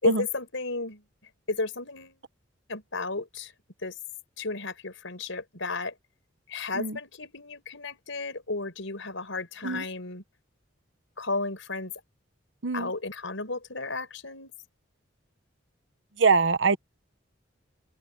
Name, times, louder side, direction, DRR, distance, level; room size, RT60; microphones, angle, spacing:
voice 1, 0.0-1.0 1.5-2.2 2.7-3.5 3.8-3.9 4.4-5.9 6.5-10.2 11.2-11.9 12.7-14.5, left 3 dB, 75° left, 4.7 m, -33 dB
voice 2, 16.2-16.8, right 4 dB, 65° right, 1.1 m, -23 dB
open air
head